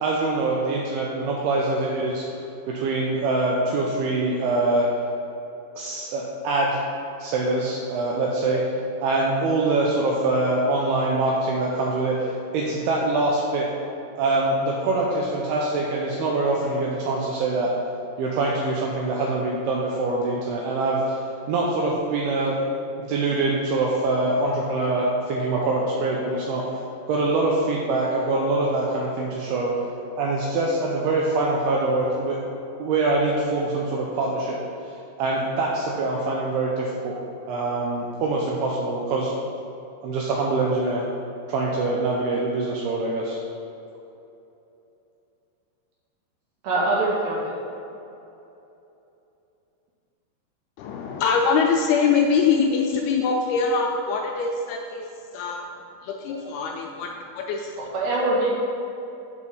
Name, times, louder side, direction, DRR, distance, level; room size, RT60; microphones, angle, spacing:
voice 1, 0.0-2.4 2.7-4.9 5.8-6.8 7.2-8.6 9.0-13.7 14.2-17.7 18.2-21.2 21.5-22.6 23.0-26.6 27.1-29.7 30.2-32.4 32.8-34.6 35.2-37.1 37.5-39.3 40.0-41.0 41.5-43.4, right 2 dB, 80° right, -3 dB, 2.5 m, -24 dB
voice 2, 46.6-47.6 57.8-58.5, right 2 dB, 60° right, -6 dB, 2.8 m, -23 dB
voice 3, 50.8-55.0 55.3-55.6 56.0-57.1 57.4-57.7, left 5 dB, 80° left, 1 dB, 2.3 m, -23 dB
6.5 x 5.1 x 5.4 m, 2.9 s
omnidirectional pair, 4.8 m